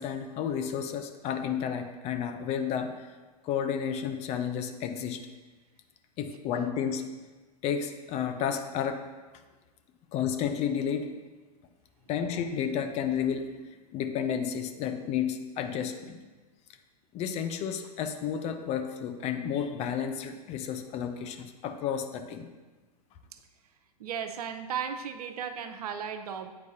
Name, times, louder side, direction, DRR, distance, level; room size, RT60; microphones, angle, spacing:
voice 1, 0.0-2.9 3.4-5.2 6.2-7.1 7.6-9.0 10.1-11.1 12.1-16.2 17.1-22.4, left 8 dB, 30° left, 7 dB, 0.5 m, -31 dB
voice 2, 24.0-26.5, right 7 dB, 65° right, 8 dB, 0.6 m, -35 dB
8.6 x 4.6 x 2.7 m, 1.3 s
hypercardioid pair, 105°, 20 cm